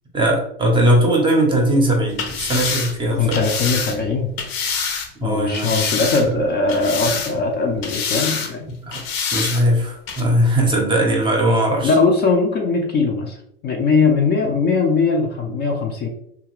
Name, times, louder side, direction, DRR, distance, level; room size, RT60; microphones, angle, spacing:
voice 1, 0.1-3.4 5.2-5.7 6.2-6.4 8.8-9.0 9.3-11.9, right 1 dB, 15° right, 0 dB, 0.7 m, -19 dB
sound 1, 2.1-5.1 5.5-6.4 6.7-7.5 7.8-8.5 8.9-9.6 10.1-10.2, left 6 dB, 70° left, 0.8 m, -26 dB
voice 2, 3.2-4.3 5.2-8.7 11.8-13.4 13.6-16.1, left 4 dB, 30° left, 1 dB, 0.5 m, -20 dB
2.8 x 2.4 x 3.0 m, 0.73 s
supercardioid pair, 125°, 31 cm